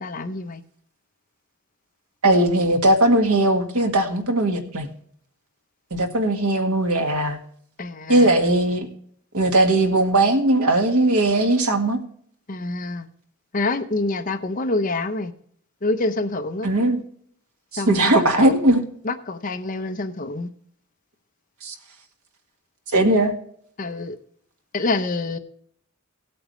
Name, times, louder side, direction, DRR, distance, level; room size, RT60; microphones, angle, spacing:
voice 1, 0.0-0.6 7.8-8.3 12.5-13.1 13.5-15.3 15.8-16.7 17.8-18.5 19.0-20.5 23.8-24.1 24.7-25.4, left 2 dB, 40° left, 0.8 m, -26 dB
voice 2, 2.2-4.9 5.9-7.4 8.1-8.9 9.3-12.0 16.6-17.0 17.7-18.8 21.6-21.7 22.9-23.3, right 1 dB, 85° right, 1.7 m, -19 dB
17.0 x 8.6 x 3.1 m
head